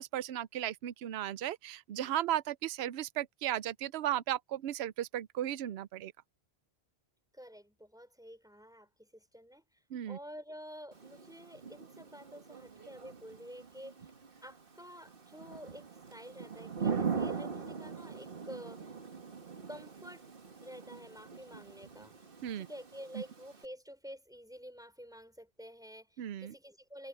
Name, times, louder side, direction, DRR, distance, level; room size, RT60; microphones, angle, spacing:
voice 1, 0.0-6.1 9.9-10.2 22.4-22.7 26.2-26.5, right 12 dB, 75° right, 0.8 m, -35 dB
voice 2, 7.3-14.1 14.4-18.9 19.7-20.3 20.6-22.2 22.5-27.1, equal, 5° right, 4.9 m, -50 dB
Thunder / Rain, 10.9-23.7, right 6 dB, 55° right, 1.9 m, -41 dB
omnidirectional pair, 1.1 m